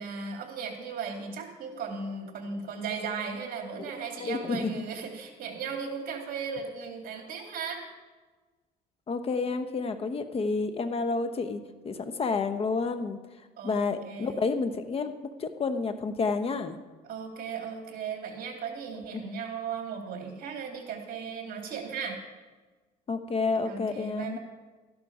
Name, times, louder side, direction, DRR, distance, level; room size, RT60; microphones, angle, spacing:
voice 1, 0.0-7.8 13.6-14.4 17.0-22.2 23.7-24.4, right 5 dB, 60° right, 3 dB, 2.6 m, -36 dB
voice 2, 4.2-4.8 9.1-13.2 13.6-15.1 15.4-16.8 19.1-19.2 23.1-24.4, left 4 dB, 35° left, 9 dB, 1.0 m, -30 dB
12.0 x 11.0 x 4.9 m, 1.3 s
cardioid pair, 110°, 17 cm